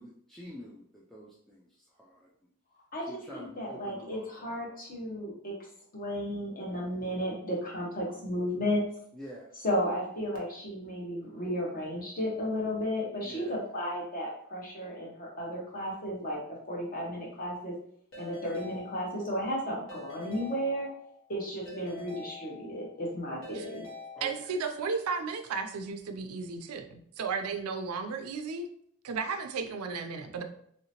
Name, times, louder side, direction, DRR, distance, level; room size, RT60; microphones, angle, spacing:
voice 1, 0.0-1.7 2.0-2.3 3.1-4.7 9.2-9.5 13.2-13.6 24.2-24.3, equal, ahead, -6 dB, 0.3 m, -47 dB
voice 2, 2.9-5.5 5.9-8.8 9.5-16.4 16.7-17.7 18.2-20.9 21.3-23.9, equal, 40° left, -3 dB, 0.9 m, -34 dB
Keyboard (musical) / Ringtone, 18.1-19.5 19.9-21.2 21.7-23.0 23.4-24.8, left 4 dB, 60° left, 1.1 m, -46 dB
voice 3, 24.2-28.7 29.0-30.4, right 5 dB, 80° right, 7 dB, 0.4 m, -34 dB
3.1 x 2.8 x 2.8 m, 0.67 s
head